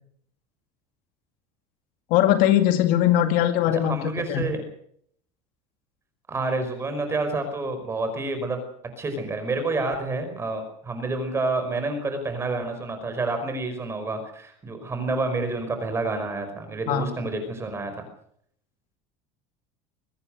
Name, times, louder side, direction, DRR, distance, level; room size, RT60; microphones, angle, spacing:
voice 1, 2.1-4.4 16.9-17.2, left 11 dB, 55° left, 7 dB, 2.4 m, -21 dB
voice 2, 3.8-4.6 6.3-8.6 9.0-17.9, right 3 dB, 15° right, 7 dB, 5.3 m, -28 dB
22.5 x 19.5 x 6.6 m, 0.66 s
cardioid pair, 175°, 17 cm